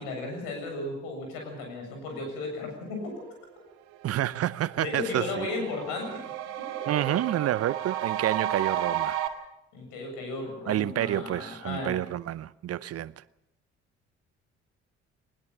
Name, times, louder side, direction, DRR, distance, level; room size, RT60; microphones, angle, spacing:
voice 1, 0.0-3.1 4.8-6.2 6.6-6.7 9.7-11.9, left 2 dB, 70° left, 7.4 m, -35 dB
sound 1, 3.5-3.6 3.9-9.3, right 11 dB, 70° right, 1.9 m, -33 dB
voice 2, 4.0-5.5 6.9-9.2 10.7-13.2, right 12 dB, 45° right, 0.7 m, -29 dB
21.0 x 20.0 x 7.3 m
figure-of-eight pair, 50°, 33 cm